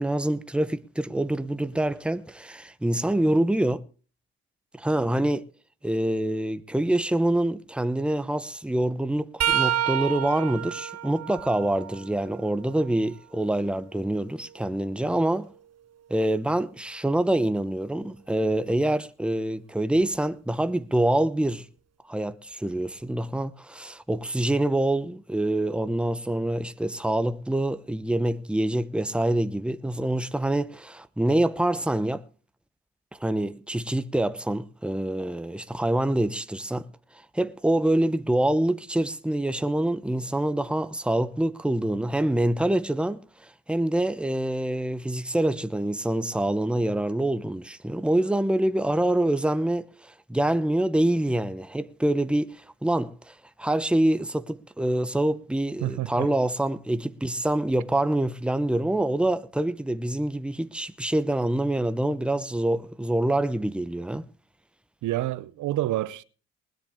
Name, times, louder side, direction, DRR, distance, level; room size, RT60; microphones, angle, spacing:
voice 1, 0.0-3.8 4.8-5.5 5.8-15.5 16.1-21.7 22.1-32.2 33.2-36.9 37.3-64.3, right 1 dB, 5° right, 1.0 m, -26 dB
sound 1, 9.4-13.2 13.7-15.6 18.6-18.7 20.0-20.2 21.5-21.6, right 10 dB, 55° right, 1.2 m, -31 dB
voice 2, 55.8-56.3 65.0-66.2, right 15 dB, 80° right, 0.8 m, -28 dB
20.5 x 10.5 x 3.7 m
cardioid pair, 90°, 30 cm